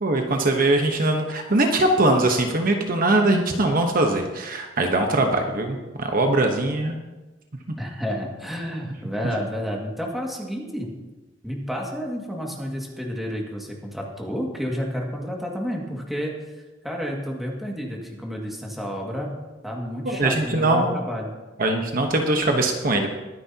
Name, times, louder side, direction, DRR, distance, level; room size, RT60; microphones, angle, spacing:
voice 1, 0.0-7.0 20.0-20.9 21.6-23.1, right 2 dB, 50° right, 3 dB, 1.1 m, -21 dB
voice 2, 7.8-10.9 11.4-16.3 16.8-19.4 19.6-21.3, equal, ahead, -2 dB, 2.1 m, -30 dB
22.0 x 9.7 x 2.9 m, 1.1 s
head